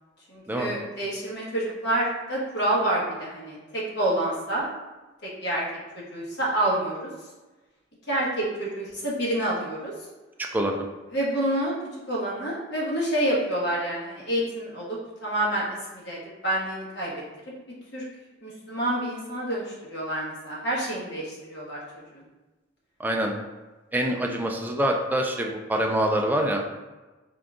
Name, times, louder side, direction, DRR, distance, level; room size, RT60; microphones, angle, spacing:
voice 1, 0.3-4.7 5.2-5.6 5.9-7.1 8.1-9.9 11.1-11.8 12.1-15.6 15.9-17.2 17.9-18.0 18.4-21.8 22.1-22.2, right 1 dB, 60° left, -5 dB, 1.1 m, -28 dB
voice 2, 10.5-10.8 23.0-23.3 23.9-26.6, right 1 dB, 10° right, 1 dB, 0.3 m, -25 dB
3.7 x 2.3 x 3.6 m, 1.2 s
head